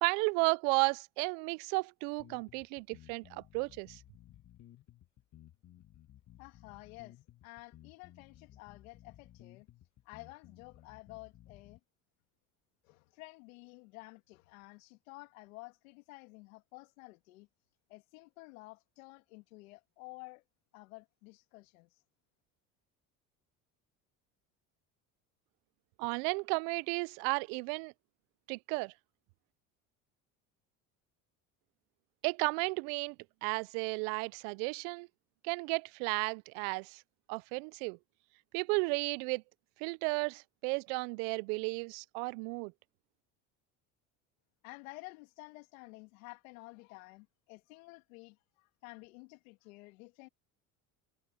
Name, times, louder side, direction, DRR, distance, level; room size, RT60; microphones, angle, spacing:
voice 1, 0.0-4.0 26.0-27.9 28.5-28.9 32.2-33.2 33.4-35.1 35.4-37.0 37.3-38.0 38.5-39.4 39.8-42.7, right 31 dB, 75° right, 0.5 m, -33 dB
sound 1, 2.2-11.8, left 12 dB, 45° left, 1.5 m, -58 dB
voice 2, 6.4-9.7 10.0-11.8 12.8-17.5 17.9-20.4 20.7-22.0 44.6-50.3, left 24 dB, 85° left, 2.7 m, -52 dB
supercardioid pair, 90°, 40 cm